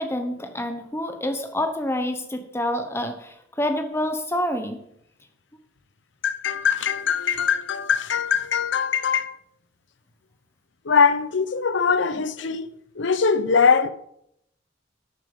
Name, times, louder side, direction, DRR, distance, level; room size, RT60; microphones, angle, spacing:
voice 1, 0.0-4.8, left 1 dB, 15° left, 0.9 m, -27 dB
voice 2, 6.2-9.3 10.9-12.7 13.0-13.9, left 6 dB, 80° left, 0.7 m, -22 dB
12.0 x 6.7 x 5.3 m
head